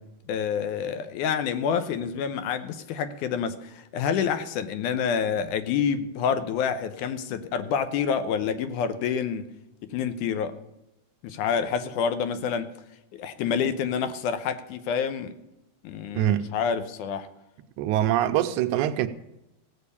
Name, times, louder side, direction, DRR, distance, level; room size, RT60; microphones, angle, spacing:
voice 1, 0.3-9.5 9.9-10.5 11.2-12.7 13.1-15.4 15.8-17.3, left 7 dB, 80° left, 2.2 m, -28 dB
voice 2, 16.1-16.5 17.8-19.1, right 12 dB, 80° right, 1.9 m, -24 dB
16.0 x 5.5 x 8.5 m
omnidirectional pair, 3.7 m